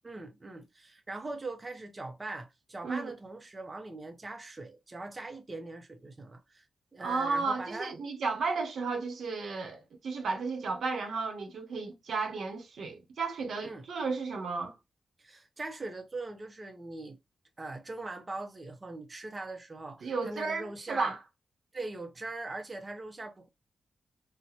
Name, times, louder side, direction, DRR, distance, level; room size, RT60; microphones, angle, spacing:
voice 1, 0.0-6.6 6.9-7.9 13.6-13.9 15.2-17.2 17.6-21.1 21.7-23.5, right 2 dB, 30° right, 0.5 m, -41 dB
voice 2, 2.8-3.1 7.0-14.7 20.0-21.2, right 4 dB, 75° right, 0.8 m, -33 dB
3.9 x 2.1 x 2.9 m
wide cardioid pair, 110°, 0 cm